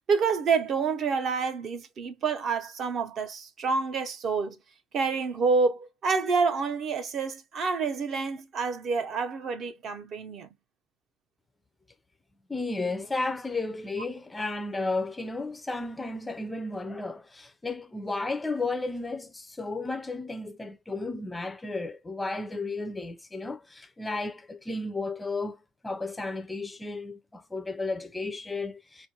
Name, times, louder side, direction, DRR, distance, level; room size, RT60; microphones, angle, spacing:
voice 1, 0.1-4.6 4.9-10.5, right 5 dB, 40° right, 0.6 m, -28 dB
voice 2, 12.5-25.6 25.8-29.1, left 3 dB, 10° left, 0.4 m, -33 dB
4.5 x 2.4 x 2.8 m
cardioid pair, 160°, 0 cm